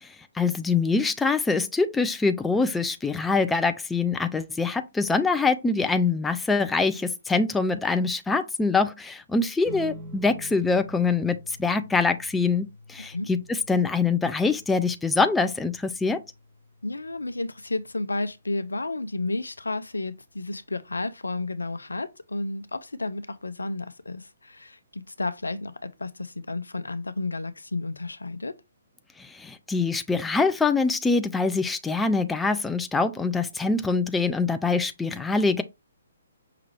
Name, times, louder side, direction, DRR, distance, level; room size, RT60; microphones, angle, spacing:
voice 1, 0.0-16.2 29.2-35.6, left 4 dB, 5° left, 0.3 m, -24 dB
sound 1, 9.6-20.4, equal, 15° right, 1.6 m, -48 dB
voice 2, 13.0-13.3 16.8-28.6, left 2 dB, 80° left, 0.5 m, -32 dB
5.7 x 2.4 x 3.1 m
figure-of-eight pair, 130°, 0 cm